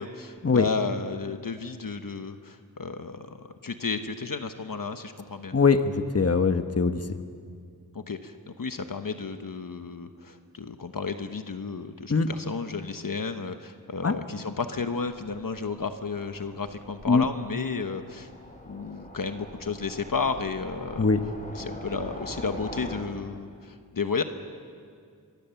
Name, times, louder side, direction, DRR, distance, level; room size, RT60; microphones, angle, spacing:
voice 1, 0.0-5.5 7.9-18.3 18.7-21.1 21.5-24.2, left 4 dB, 65° left, 7 dB, 1.1 m, -32 dB
voice 2, 5.5-7.0 12.1-12.3 14.0-14.1 17.1-17.2 21.0-21.2, left 4 dB, 40° left, 8 dB, 1.2 m, -22 dB
Train, 14.8-23.0, equal, 20° left, 4.5 m, -43 dB
25.5 x 23.5 x 7.1 m, 2.2 s
wide cardioid pair, 80°, 37 cm